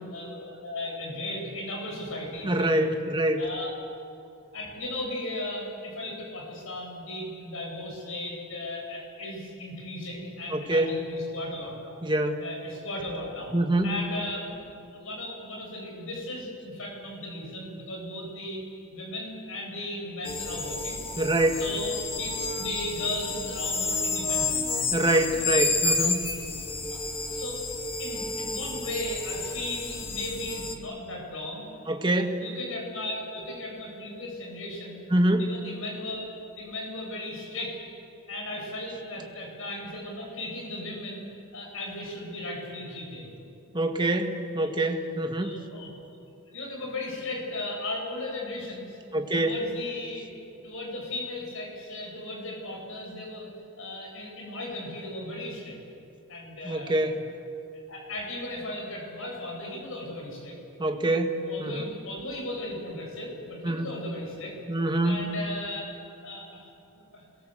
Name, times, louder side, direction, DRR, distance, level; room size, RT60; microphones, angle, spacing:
voice 1, 0.1-2.9 3.4-3.7 4.5-12.0 12.4-13.5 13.8-14.6 14.9-18.6 18.9-21.0 21.6-22.3 22.6-24.6 25.5-25.6 26.9-27.0 27.3-27.6 28.0-31.7 32.2-35.0 35.4-36.3 36.6-37.8 38.3-41.2 41.5-43.3 44.8-44.9 45.4-45.9 46.5-49.0 49.3-50.3 50.6-53.5 53.8-55.8 56.3-57.0 57.9-60.6 61.5-64.5 65.0-65.9 66.2-66.7 67.1-67.2, left 1 dB, 65° left, 0 dB, 7.8 m, -36 dB
voice 2, 2.4-3.4 10.5-11.0 12.0-12.4 13.5-13.9 21.2-21.6 24.9-26.3 31.9-32.4 35.1-35.5 43.7-45.5 49.1-49.5 56.6-57.3 60.8-61.3 61.6-61.9 63.6-63.9 64.7-65.3, right 1 dB, 20° right, 4 dB, 1.8 m, -25 dB
sound 1, 20.2-30.8, left 3 dB, 25° left, 2.0 m, -30 dB
28.0 x 22.0 x 7.9 m, 2.7 s
head